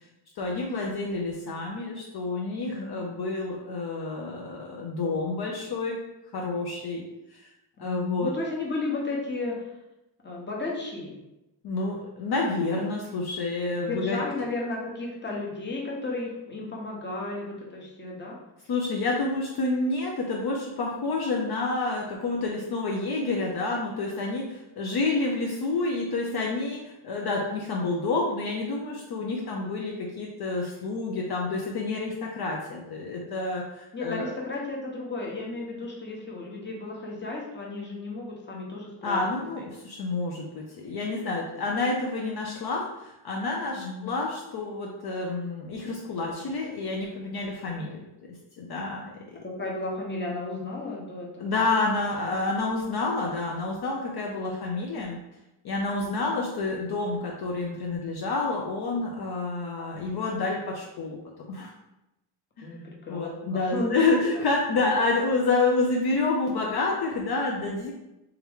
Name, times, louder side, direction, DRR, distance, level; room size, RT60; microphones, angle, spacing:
voice 1, 0.4-6.0 6.3-7.0 7.3-7.5 7.8-8.3 11.6-14.2 18.7-34.3 39.0-49.2 51.4-55.2 55.6-61.2 61.5-61.7 62.6-62.7 63.1-67.9, left 3 dB, 55° left, -1 dB, 0.6 m, -29 dB
voice 2, 2.6-3.0 7.8-9.7 10.2-11.2 13.7-18.4 29.3-29.5 33.9-39.3 39.6-39.7 43.8-44.1 47.7-47.8 49.4-51.5 54.4-54.5 56.0-56.3 62.6-64.2, left 2 dB, 25° left, -2 dB, 0.9 m, -34 dB
3.5 x 2.9 x 3.5 m, 0.92 s
cardioid pair, 135°, 46 cm